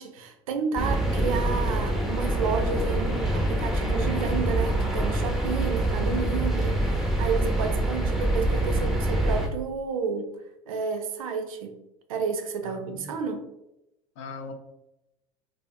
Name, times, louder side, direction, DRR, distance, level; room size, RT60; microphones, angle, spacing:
voice 1, 0.0-10.3 10.7-11.7 12.1-13.5, right 5 dB, 70° right, 6 dB, 0.4 m, -31 dB
sound 1, 0.8-9.5, right 1 dB, ahead, 0.5 m, -25 dB
voice 2, 12.6-13.1 14.2-14.5, left 4 dB, 55° left, 5 dB, 0.5 m, -40 dB
2.4 x 2.4 x 2.3 m, 0.90 s
figure-of-eight pair, 70°, 19 cm